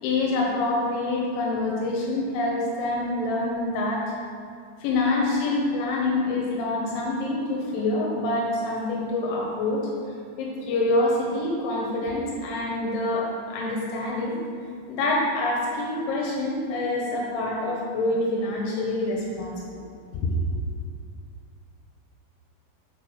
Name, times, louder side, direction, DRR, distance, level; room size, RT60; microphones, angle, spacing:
voice 1, 0.0-4.0 4.8-9.9 10.4-14.3 14.9-19.5 20.3-20.4, left 2 dB, 85° left, -3 dB, 3.5 m, -26 dB
8.7 x 4.2 x 6.3 m, 2.3 s
omnidirectional pair, 5.2 m